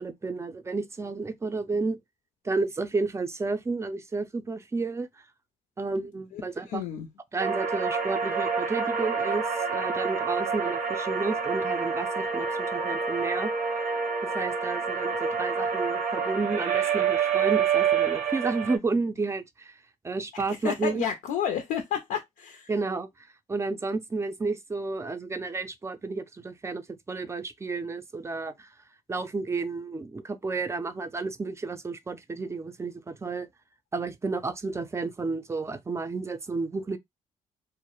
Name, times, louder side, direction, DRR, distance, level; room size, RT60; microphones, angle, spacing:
voice 1, 0.0-2.0 2.4-5.1 5.8-6.8 7.3-14.0 14.3-19.7 20.0-21.0 22.7-23.1 23.5-28.7 29.1-33.5 33.9-37.0, right 3 dB, 20° right, 0.4 m, -31 dB
voice 2, 6.7-7.1 20.6-22.7, left 9 dB, 85° left, 0.5 m, -30 dB
sound 1, 7.4-18.8, right 6 dB, 80° right, 0.6 m, -27 dB
2.3 x 2.0 x 2.9 m
cardioid pair, 90°, 14 cm